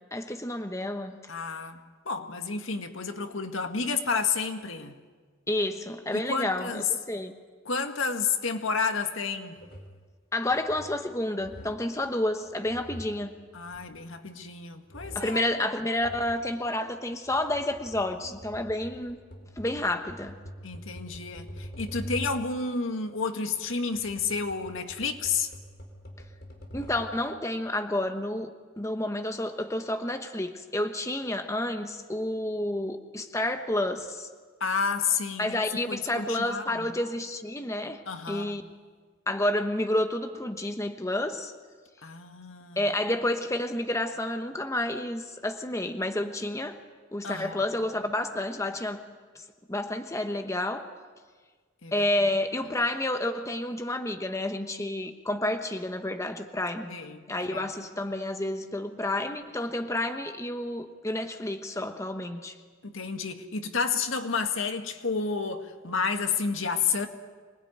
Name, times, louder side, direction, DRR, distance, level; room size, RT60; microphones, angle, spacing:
voice 1, 0.1-1.1 5.5-7.4 10.3-13.3 15.1-19.2 19.6-20.3 26.7-34.3 35.4-38.6 39.3-41.5 42.8-46.8 47.1-49.0 49.3-50.9 51.9-56.9 57.3-62.5, left 1 dB, 15° left, 6 dB, 1.1 m, -30 dB
voice 2, 1.3-5.0 6.1-6.8 7.7-9.6 13.5-15.4 20.6-25.5 34.6-35.6 35.9-36.9 38.1-38.6 42.0-42.9 47.2-47.6 51.8-52.1 56.9-57.7 62.8-67.1, left 5 dB, 85° left, 6 dB, 1.9 m, -31 dB
sound 1, 9.6-10.0 10.5-11.0 11.4-11.9 12.5-14.5 14.9-15.4 15.9-16.5 17.1-22.6 23.5-27.3, equal, 50° left, 4.5 m, -45 dB
25.5 x 20.0 x 9.5 m, 1.5 s
head